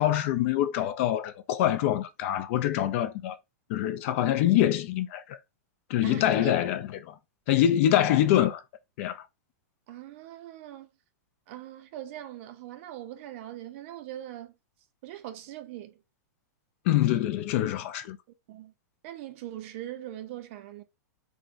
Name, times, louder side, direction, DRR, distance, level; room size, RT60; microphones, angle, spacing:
voice 1, 0.0-3.3 3.7-5.4 5.9-7.1 7.5-8.6 9.0-9.2 16.9-18.2, left 12 dB, 50° left, 0.4 m, -25 dB
voice 2, 6.0-6.6 9.9-10.9 11.5-14.5 15.0-16.0 18.5-18.7 19.0-20.8, right 13 dB, 50° right, 0.5 m, -41 dB
3.6 x 2.1 x 2.5 m
hypercardioid pair, 145°, 9 cm